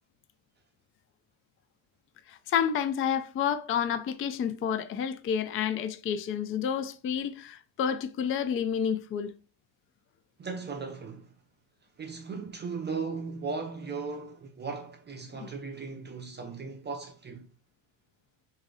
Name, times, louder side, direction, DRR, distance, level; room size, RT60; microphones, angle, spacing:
voice 1, 2.3-9.3 15.3-15.5, left 8 dB, 30° left, 0.4 m, -30 dB
voice 2, 10.4-11.3 12.0-17.5, right 4 dB, 20° right, 0.6 m, -37 dB
3.9 x 2.7 x 4.7 m
cardioid pair, 130°, 48 cm